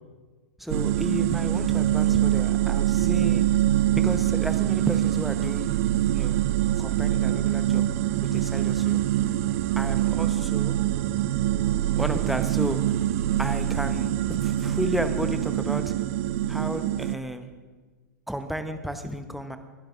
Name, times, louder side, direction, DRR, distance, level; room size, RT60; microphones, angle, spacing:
voice 1, 0.6-3.4 4.0-5.7 6.1-6.5 6.8-9.0 9.8-10.8 12.0-12.8 13.4-15.9 16.5-17.5 18.3-19.6, right 1 dB, ahead, 8 dB, 0.9 m, -32 dB
sound 1, 0.7-17.2, right 12 dB, 50° right, 0.6 m, -24 dB
29.0 x 11.5 x 2.5 m, 1.4 s
figure-of-eight pair, 100°, 10 cm